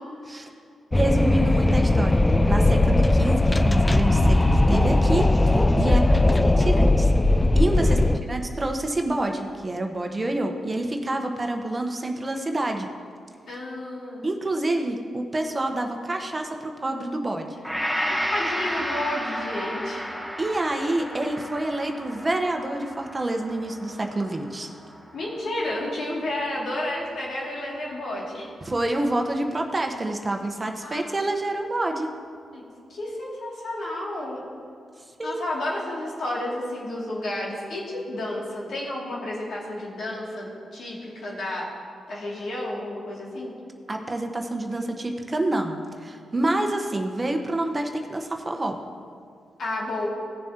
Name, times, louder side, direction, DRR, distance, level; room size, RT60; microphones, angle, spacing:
Wind, 0.9-8.2, left 2 dB, 20° left, 0.5 m, -19 dB
voice 1, 0.9-2.2 2.5-6.0 6.4-7.1 7.5-8.0 8.3-12.9 14.2-17.6 20.4-24.7 28.6-32.1 35.2-35.4 43.9-48.8, right 2 dB, 30° right, 4 dB, 1.1 m, -27 dB
voice 2, 5.9-6.2 7.8-8.1 13.5-14.3 17.9-20.1 20.8-20.9 25.1-28.5 30.8-31.3 32.5-32.6 32.9-34.4 35.2-41.7 42.1-43.5 49.6-50.1, left 1 dB, 65° left, -4 dB, 2.6 m, -32 dB
Gong, 17.6-26.0 26.4-26.5, equal, ahead, 1.5 m, -32 dB
17.0 x 7.1 x 3.0 m, 2.4 s
hypercardioid pair, 40°, 0 cm